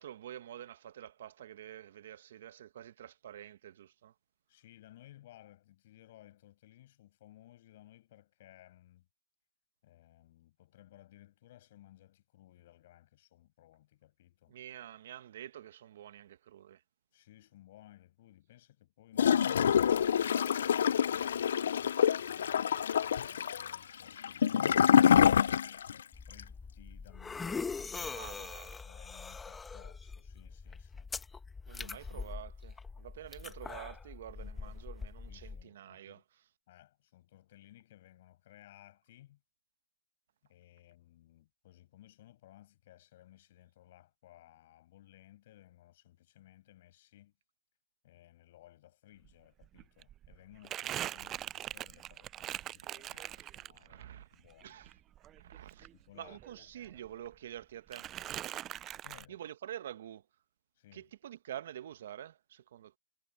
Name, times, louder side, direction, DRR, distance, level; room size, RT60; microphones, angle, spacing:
voice 1, 0.0-4.1 14.5-16.8 28.1-28.8 31.7-36.2 52.8-53.5 53.8-54.3 54.6-54.9 55.4-55.9 56.2-58.1 59.3-60.2 60.9-63.0, right 11 dB, 65° right, 0.9 m, -48 dB
voice 2, 4.5-9.1 9.8-14.6 17.1-20.3 21.1-25.6 26.3-31.1 31.8-32.3 33.4-33.5 34.4-34.9 35.2-36.2 36.7-39.4 40.4-47.3 48.0-54.8 56.1-57.3 59.0-59.4 60.8-61.1, left 14 dB, 55° left, 7.7 m, -59 dB
Gurgling / Toilet flush, 19.2-26.0 26.3-26.4, left 8 dB, 75° left, 0.4 m, -26 dB
sound 1, 26.1-35.6, left 4 dB, 10° left, 1.3 m, -43 dB
Crumpling crinkling, 49.3-49.4 49.6-54.1 54.4-56.6 56.8-57.6 57.9-59.3, right 12 dB, 20° right, 0.3 m, -42 dB
hypercardioid pair, 145°, 0 cm